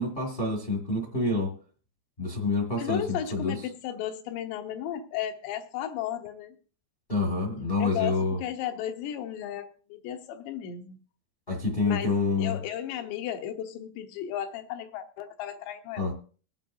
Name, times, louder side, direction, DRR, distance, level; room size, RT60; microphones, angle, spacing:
voice 1, 0.0-1.5 2.2-3.5 7.1-8.4 11.5-12.6 16.0-16.1, left 3 dB, 50° left, 1 dB, 0.6 m, -27 dB
voice 2, 2.8-6.6 7.8-11.0 11.8-12.1 12.4-16.1, left 10 dB, 85° left, 5 dB, 3.2 m, -34 dB
22.5 x 9.0 x 2.7 m, 0.40 s
omnidirectional pair, 4.9 m